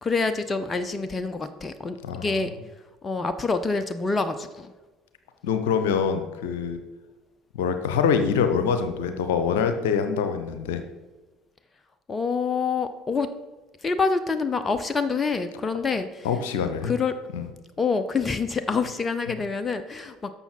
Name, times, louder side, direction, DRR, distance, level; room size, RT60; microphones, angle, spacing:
voice 1, 0.0-2.5 3.0-4.7 12.1-13.3 13.8-16.3 16.8-17.2 17.8-20.3, left 4 dB, 25° left, 10 dB, 0.7 m, -26 dB
voice 2, 2.0-2.3 5.4-6.8 7.5-10.8 16.2-16.9 17.3-17.5, left 6 dB, 70° left, 8 dB, 0.9 m, -25 dB
11.0 x 7.0 x 4.5 m, 1.2 s
figure-of-eight pair, 60°, 0 cm